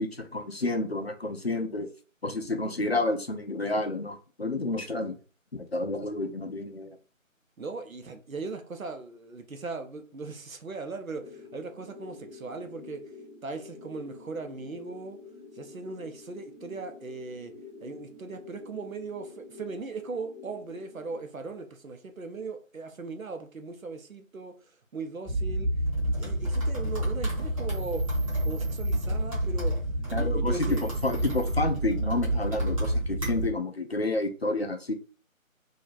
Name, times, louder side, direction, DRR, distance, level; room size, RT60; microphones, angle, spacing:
voice 1, 0.0-1.9 2.2-5.2 5.5-7.0 30.1-30.5 31.0-34.9, left 2 dB, 50° left, 0.4 m, -30 dB
voice 2, 7.6-13.0 13.4-15.2 15.6-17.5 17.8-24.5 24.9-25.7 26.2-28.1 28.4-30.9 33.1-33.2, right 3 dB, 75° right, 0.8 m, -38 dB
sound 1, 11.2-21.2, left 3 dB, 5° left, 1.0 m, -48 dB
sound 2, 25.2-33.5, right 1 dB, 25° right, 1.0 m, -28 dB
3.0 x 2.5 x 2.4 m
figure-of-eight pair, 160°, 41 cm